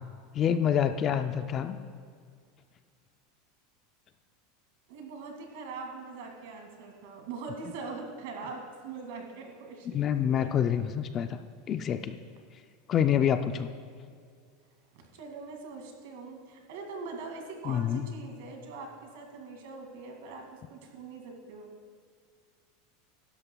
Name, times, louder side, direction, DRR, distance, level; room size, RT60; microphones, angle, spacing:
voice 1, 0.3-1.8 9.9-11.4 11.7-12.2 12.9-13.7 17.7-18.1, left 9 dB, 25° left, 9 dB, 0.4 m, -27 dB
voice 2, 4.9-10.5 14.9-21.7, right 4 dB, 65° right, 2 dB, 2.2 m, -42 dB
16.5 x 12.0 x 2.3 m, 2.1 s
supercardioid pair, 170°, 0 cm